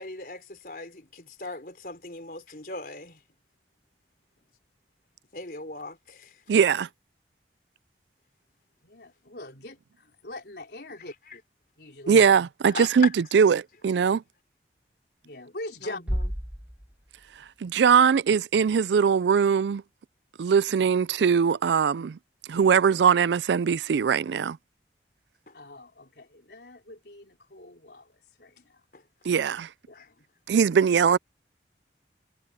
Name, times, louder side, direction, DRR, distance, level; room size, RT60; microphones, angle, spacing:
voice 1, 0.0-3.2 5.3-6.4 11.3-11.4 12.7-13.1 15.8-16.3 25.5-25.6 28.9-29.0 29.9-30.1, left 3 dB, 55° left, 4.7 m, -39 dB
voice 2, 6.5-6.9 12.1-13.1 13.3-14.2 17.6-19.8 20.4-22.2 22.5-24.6 29.3-29.7 30.5-31.2, right 6 dB, 85° right, 0.4 m, -21 dB
voice 3, 8.8-11.4 11.8-12.2 12.6-12.8 15.2-16.0 25.5-28.8 29.9-30.2, left 2 dB, 70° left, 3.7 m, -43 dB
Bass drum, 16.1-17.8, equal, 10° right, 1.3 m, -33 dB
head